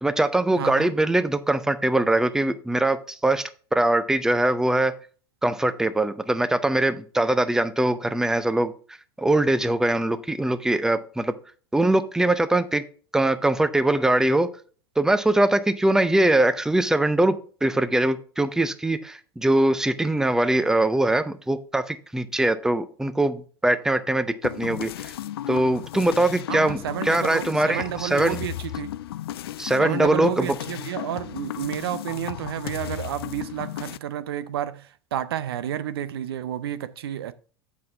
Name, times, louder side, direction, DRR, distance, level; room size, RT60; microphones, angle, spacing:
voice 1, 0.0-4.9 5.4-8.7 9.2-11.3 11.7-12.8 13.1-14.5 15.0-17.3 17.6-25.1 25.5-28.4 29.6-30.5, right 1 dB, 5° right, 0.6 m, -22 dB
voice 2, 0.6-0.9 26.5-28.9 29.8-37.3, right 11 dB, 75° right, 0.6 m, -31 dB
sound 1, 24.4-34.0, left 12 dB, 75° left, 0.4 m, -34 dB
7.6 x 5.6 x 4.3 m
hypercardioid pair, 85°, 13 cm